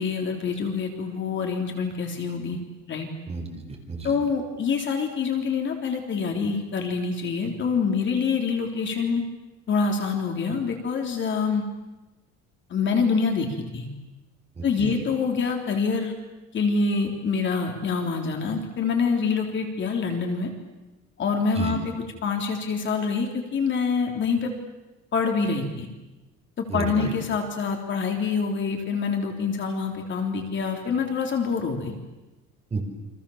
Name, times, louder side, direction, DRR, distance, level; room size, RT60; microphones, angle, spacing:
voice 1, 0.0-2.6 2.9-3.1 4.0-9.2 9.7-11.6 12.7-13.5 13.7-13.9 14.6-16.1 16.5-20.5 21.2-21.9 22.2-24.5 25.1-25.9 26.6-32.0, left 5 dB, 35° left, 3 dB, 3.6 m, -26 dB
voice 2, 3.3-4.1 14.6-15.0 21.5-21.8 26.7-27.1 32.7-32.8, right 4 dB, 20° right, 3 dB, 4.9 m, -31 dB
29.5 x 25.5 x 7.3 m, 1.1 s
cardioid pair, 165°, 32 cm